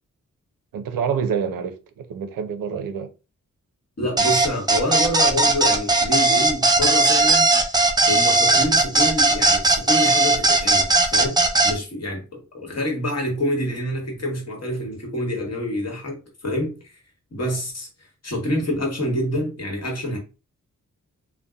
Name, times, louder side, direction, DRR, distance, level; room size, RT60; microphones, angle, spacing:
voice 1, 0.7-3.1, right 7 dB, 85° right, 0.5 m, -27 dB
voice 2, 4.0-7.5 8.1-11.4 11.6-17.0 17.3-17.9 18.2-20.2, left 1 dB, 50° left, 1.1 m, -27 dB
sound 1, 4.2-11.7, right 2 dB, 15° right, 0.4 m, -18 dB
2.6 x 2.0 x 2.3 m
cardioid pair, 50°, 33 cm